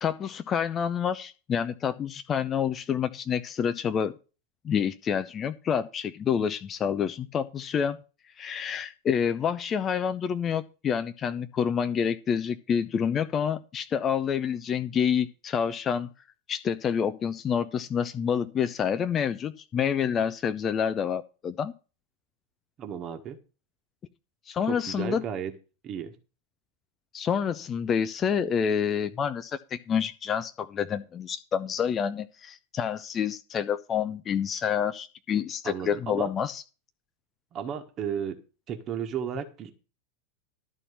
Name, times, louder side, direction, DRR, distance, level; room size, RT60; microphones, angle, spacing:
voice 1, 0.0-4.1 4.6-8.0 8.4-16.1 16.5-21.7 24.5-25.2 27.1-36.6, left 7 dB, 25° left, 10 dB, 0.6 m, -28 dB
voice 2, 22.8-23.4 24.7-25.5 25.8-26.1 35.6-36.3 37.5-38.4 38.7-39.7, right 8 dB, 35° right, 5 dB, 1.4 m, -34 dB
12.0 x 4.2 x 8.2 m, 0.33 s
figure-of-eight pair, 90°, 0 cm